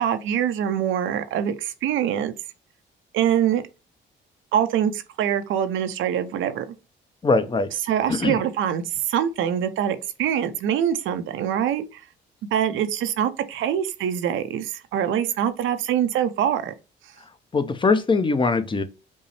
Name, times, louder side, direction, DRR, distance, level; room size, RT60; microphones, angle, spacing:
voice 1, 0.0-2.3 3.1-3.6 4.5-6.7 7.8-12.0 12.5-16.7, right 9 dB, 80° right, 0.6 m, -24 dB
voice 2, 7.2-7.7 8.1-8.4 17.5-18.8, left 4 dB, 25° left, 0.6 m, -21 dB
5.3 x 2.0 x 3.1 m
cardioid pair, 90°, 20 cm